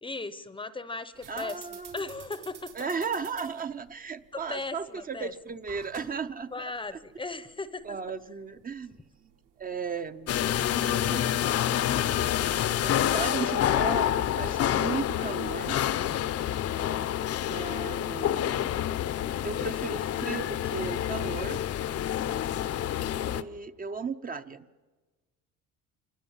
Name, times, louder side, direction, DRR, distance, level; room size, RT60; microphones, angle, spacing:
voice 1, 0.0-2.7 4.3-5.3 6.5-8.0, left 3 dB, 15° left, 14 dB, 0.8 m, -37 dB
sound 1, 1.1-11.2, right 8 dB, 80° right, 5.2 m, -52 dB
voice 2, 1.3-2.0 2.7-7.0 7.8-8.9 9.6-11.5 12.8-15.8 17.5-18.7 19.4-21.6 23.1-24.7, right 5 dB, 25° right, 9 dB, 0.8 m, -36 dB
sound 2, 10.3-23.4, left 11 dB, 50° left, 0.8 m, -28 dB
26.0 x 20.5 x 7.3 m, 1.3 s
cardioid pair, 130°, 31 cm